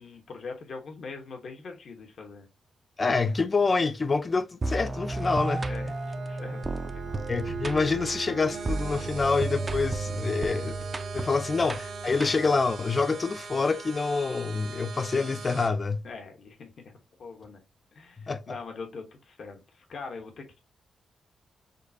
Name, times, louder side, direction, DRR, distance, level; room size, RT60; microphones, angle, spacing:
voice 1, 0.0-2.5 5.6-7.2 16.0-16.9 17.2-17.6 17.9-20.6, left 4 dB, 60° left, 1.1 m, -42 dB
voice 2, 3.0-5.6 7.3-10.8 11.1-16.0 18.2-18.4, left 4 dB, 30° left, 0.5 m, -26 dB
sound 1, 4.6-12.7, right 3 dB, 25° right, 0.5 m, -33 dB
Bowed string instrument, 5.0-9.3, right 5 dB, 80° right, 1.3 m, -46 dB
sound 2, 8.5-15.7, right 4 dB, 65° right, 1.1 m, -41 dB
6.5 x 2.4 x 2.7 m
wide cardioid pair, 125°, 0 cm